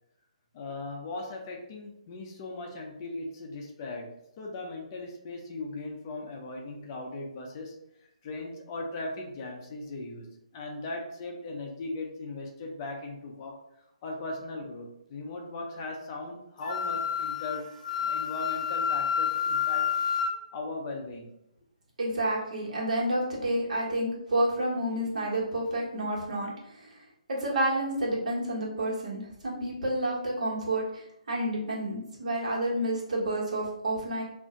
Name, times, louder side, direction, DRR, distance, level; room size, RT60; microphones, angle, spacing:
voice 1, 0.5-7.7 8.2-10.3 10.5-13.6 14.0-17.7 18.0-19.9 20.5-21.3, left 2 dB, 30° left, 1 dB, 0.5 m, -38 dB
Wind instrument woodwind instrument, 16.6-20.3, left 8 dB, 90° left, 0.6 m, -29 dB
voice 2, 22.0-34.2, right 1 dB, 70° right, -4 dB, 1.2 m, -30 dB
2.5 x 2.1 x 3.6 m, 0.80 s
hypercardioid pair, 160°, 4 cm